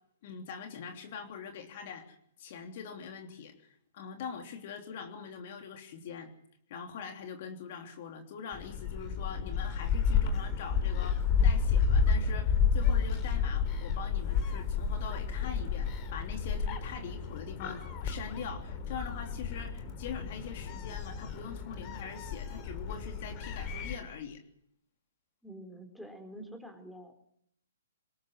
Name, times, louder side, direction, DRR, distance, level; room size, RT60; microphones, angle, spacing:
voice 1, 0.2-3.5 3.9-6.3 6.7-24.4, left 6 dB, 50° left, 4 dB, 3.2 m, -43 dB
Gull seagull, 8.5-24.0, left 6 dB, 30° left, 3.6 m, -31 dB
voice 2, 25.4-27.1, right 1 dB, ahead, 5 dB, 4.2 m, -47 dB
23.5 x 20.5 x 6.3 m, 0.72 s
hypercardioid pair, 130°, 0 cm